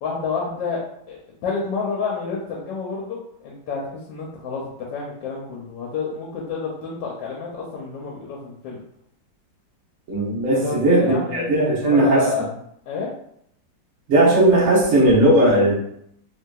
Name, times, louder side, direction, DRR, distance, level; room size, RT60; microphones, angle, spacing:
voice 1, 0.0-4.6 4.9-8.8 10.5-12.5 12.9-13.1, left 5 dB, 80° left, -3 dB, 1.3 m, -29 dB
voice 2, 10.1-12.3 14.1-15.8, right 1 dB, 50° right, -5 dB, 1.2 m, -17 dB
3.3 x 2.7 x 2.3 m, 0.71 s
omnidirectional pair, 2.0 m